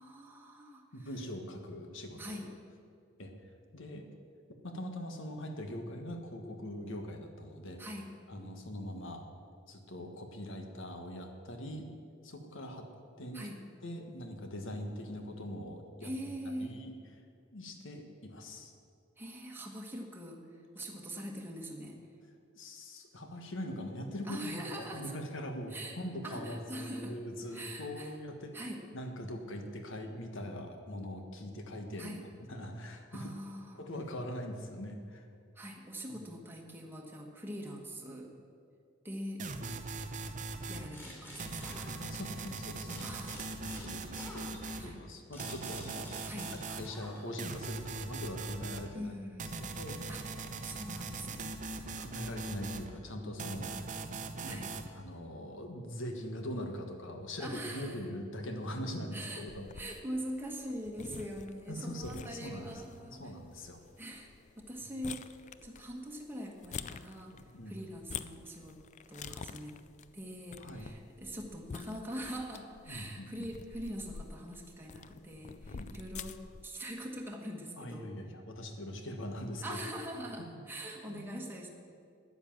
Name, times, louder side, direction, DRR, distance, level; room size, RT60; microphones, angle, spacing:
voice 1, 0.0-1.1 2.2-2.5 7.8-8.1 13.3-13.6 16.0-16.8 19.2-22.0 24.2-25.2 25.7-26.0 26.2-27.2 27.5-28.2 28.5-28.8 32.0-32.3 33.1-33.8 35.5-38.3 39.0-39.5 40.7-41.8 43.0-43.5 44.8-45.0 46.3-46.5 48.9-49.7 50.1-50.2 50.6-52.0 54.5-54.7 57.4-58.0 59.1-59.5 59.7-63.3 64.0-67.3 67.7-68.8 69.1-69.8 70.1-78.1 79.6-81.7, equal, 10° right, 0 dB, 1.4 m, -43 dB
voice 2, 0.9-2.4 3.2-3.3 3.7-4.1 4.6-7.8 8.3-9.2 9.7-11.9 12.2-12.9 13.2-13.5 13.8-16.1 16.6-16.9 17.5-18.7 22.5-32.2 32.5-33.3 33.7-35.3 36.1-36.2 39.6-39.8 42.0-43.1 43.6-46.1 46.7-49.1 49.6-50.0 51.8-54.6 54.9-59.7 61.7-62.8 63.2-63.8 67.3-67.7 70.6-70.8 72.9-73.5 75.6-75.9 77.8-79.8 81.1-81.3, equal, 65° left, 5 dB, 1.5 m, -42 dB
sound 1, 39.4-40.9 41.4-44.9 45.4-46.9 47.4-48.9 49.4-52.9 53.4-54.9, right 3 dB, 40° right, 0.7 m, -41 dB
sound 2, 40.9-42.5 42.9-47.6, left 1 dB, 10° left, 3.1 m, -50 dB
sound 3, 59.5-76.6, left 6 dB, 35° left, 0.4 m, -48 dB
9.9 x 9.8 x 7.3 m, 2.4 s
head